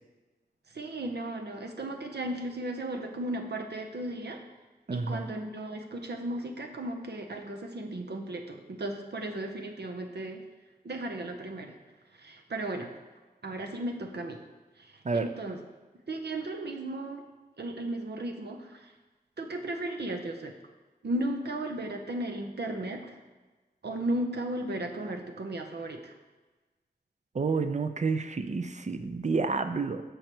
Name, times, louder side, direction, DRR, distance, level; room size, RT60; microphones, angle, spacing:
voice 1, 0.7-4.4 4.9-10.4 10.8-11.7 12.1-12.9 13.4-14.4 14.8-15.6 16.1-17.2 17.6-18.9 19.4-20.5 21.0-23.2 23.8-26.1, right 1 dB, 80° right, 3 dB, 0.7 m, -35 dB
voice 2, 4.9-5.2 15.0-15.2 27.3-30.0, right 4 dB, 45° right, 9 dB, 0.5 m, -29 dB
6.5 x 4.6 x 4.4 m, 1.2 s
wide cardioid pair, 55°, 17 cm